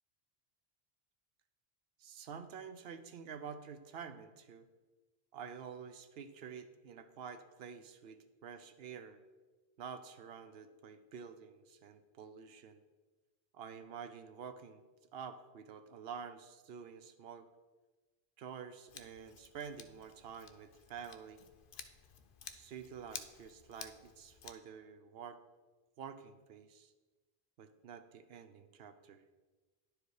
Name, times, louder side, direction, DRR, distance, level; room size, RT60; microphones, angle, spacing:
voice 1, 2.0-4.7 5.3-9.2 9.8-12.8 13.5-14.8 15.1-17.5 18.4-21.4 22.5-25.4 26.0-26.9 27.6-29.2, right 7 dB, 75° right, 10 dB, 0.9 m, -49 dB
Scissors, 18.9-24.5, left 7 dB, 60° left, 0.7 m, -53 dB
10.5 x 4.8 x 4.8 m, 1.3 s
omnidirectional pair, 1.0 m